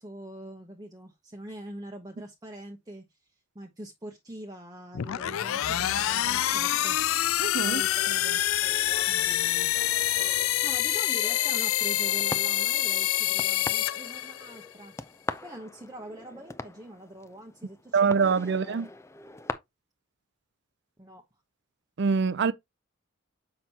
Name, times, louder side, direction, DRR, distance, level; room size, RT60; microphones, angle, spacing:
voice 1, 0.0-7.0 7.7-8.4 9.0-15.0 15.4-18.6 21.0-21.2 22.5-22.6, right 1 dB, 20° right, 0.9 m, -44 dB
sound 1, 4.9-14.7, left 13 dB, 85° left, 0.4 m, -26 dB
sound 2, 5.6-11.0, left 4 dB, 65° left, 0.7 m, -50 dB
sound 3, 5.9-19.5, left 2 dB, 15° left, 0.5 m, -43 dB
voice 2, 7.4-7.8 17.9-18.9 22.0-22.5, right 5 dB, 55° right, 0.5 m, -24 dB
7.3 x 5.9 x 2.8 m
head